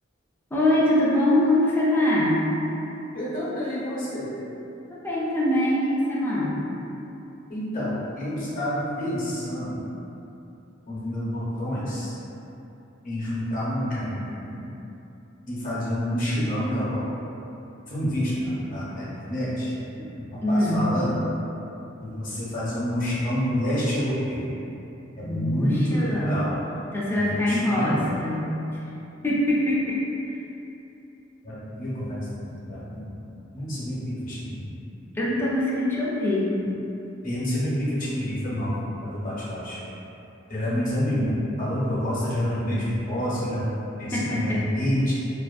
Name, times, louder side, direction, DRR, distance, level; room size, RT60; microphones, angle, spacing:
voice 1, 0.5-2.5 4.9-6.6 20.0-20.1 20.4-20.9 25.2-26.5 26.9-28.8 29.2-30.0 30.3-30.4 35.1-36.5 44.1-44.8, left 1 dB, 10° left, -7 dB, 0.4 m, -23 dB
voice 2, 3.1-4.3 7.5-9.8 10.9-12.1 13.0-14.6 15.5-17.1 17.9-19.7 20.5-21.2 22.0-24.5 25.2-26.6 27.1-28.1 31.4-33.1 33.5-34.7 37.2-38.7 39.0-39.8 40.5-43.7 44.0-45.1, equal, 45° left, -8 dB, 0.8 m, -28 dB
2.5 x 2.5 x 2.4 m, 3.0 s
head